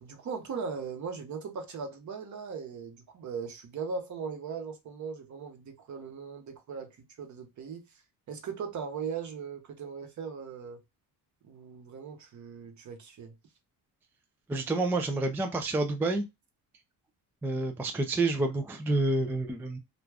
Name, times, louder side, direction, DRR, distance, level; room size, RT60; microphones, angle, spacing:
voice 1, 0.0-7.9 8.3-10.8 11.4-13.4, right 5 dB, 45° right, 0.9 m, -39 dB
voice 2, 14.5-16.3 17.4-19.8, right 2 dB, 5° right, 0.3 m, -28 dB
2.4 x 2.3 x 3.2 m
cardioid pair, 100°, 39 cm